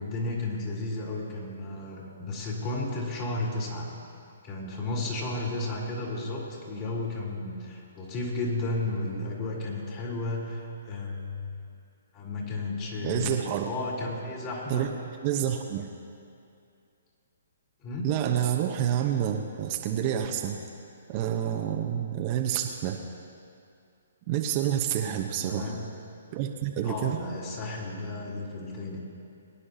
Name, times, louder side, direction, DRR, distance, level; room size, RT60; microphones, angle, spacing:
voice 1, 0.0-3.9 4.4-11.6 12.1-14.9 17.8-18.1 25.5-25.8 26.8-29.0, left 2 dB, 30° left, -3 dB, 3.4 m, -33 dB
voice 2, 13.0-13.7 14.7-14.9 15.2-15.9 18.0-20.6 21.1-23.0 24.3-25.8 26.3-27.2, right 10 dB, 35° right, 3 dB, 0.9 m, -28 dB
23.0 x 9.8 x 2.8 m, 2.5 s
hypercardioid pair, 140°, 0 cm